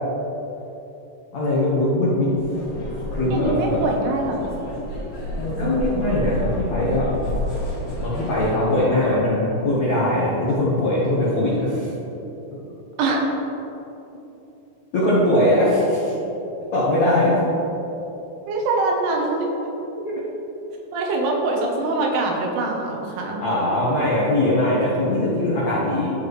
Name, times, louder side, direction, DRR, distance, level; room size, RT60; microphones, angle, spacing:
voice 1, 1.3-2.4 3.1-3.8 5.4-7.1 8.0-11.9 14.9-16.1 16.7-17.3 20.0-20.1 23.4-26.1, left 1 dB, 85° left, -8 dB, 1.5 m, -21 dB
sound 1, 2.4-8.6, equal, 55° left, 3.0 m, -30 dB
voice 2, 3.3-4.6 13.0-13.3 18.5-19.5 20.9-23.4, right 2 dB, 85° right, 1 dB, 3.5 m, -23 dB
14.0 x 5.1 x 3.2 m, 3.0 s
omnidirectional pair, 5.5 m